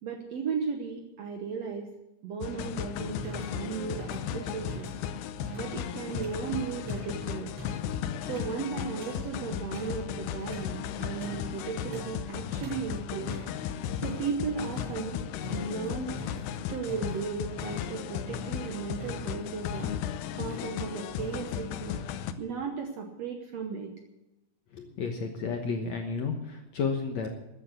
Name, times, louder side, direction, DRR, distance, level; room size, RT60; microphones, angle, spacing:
voice 1, 0.0-1.9 2.2-5.0 5.5-7.5 8.2-13.3 14.0-15.2 15.5-16.2 16.7-19.9 20.4-21.9 22.4-23.9, right 6 dB, 75° right, 3 dB, 1.5 m, -35 dB
sound 1, 2.4-22.3, left 9 dB, 85° left, 2.8 m, -35 dB
sound 2, 3.1-22.0, equal, 45° right, 7.0 m, -47 dB
voice 2, 24.7-27.3, left 5 dB, 65° left, 3 dB, 1.7 m, -32 dB
14.0 x 9.5 x 8.2 m, 0.94 s
omnidirectional pair, 4.7 m